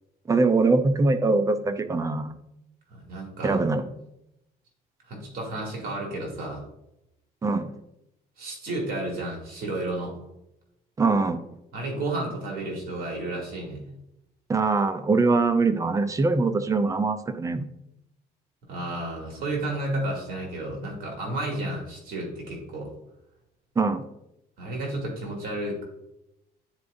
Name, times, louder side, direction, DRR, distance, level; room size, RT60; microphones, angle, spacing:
voice 1, 0.3-2.4 3.4-3.8 7.4-7.7 11.0-11.4 14.5-17.7 23.8-24.0, right 3 dB, 20° right, 10 dB, 0.5 m, -23 dB
voice 2, 2.9-3.6 5.1-6.6 8.4-10.1 11.7-13.8 18.6-22.9 24.6-25.8, right 2 dB, 60° right, -1 dB, 2.5 m, -32 dB
9.7 x 4.7 x 2.6 m, 0.85 s
cardioid pair, 110°, 17 cm